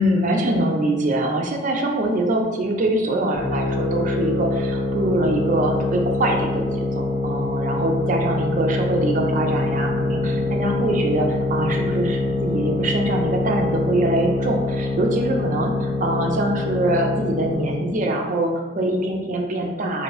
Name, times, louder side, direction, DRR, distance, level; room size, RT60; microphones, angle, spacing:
voice 1, 0.0-20.0, right 1 dB, 40° right, 2 dB, 0.4 m, -23 dB
sound 1, 3.3-17.9, left 2 dB, 10° left, 1.0 m, -24 dB
Piano, 8.9-14.0, right 2 dB, 85° left, 0.9 m, -36 dB
2.7 x 2.5 x 3.1 m, 1.2 s
head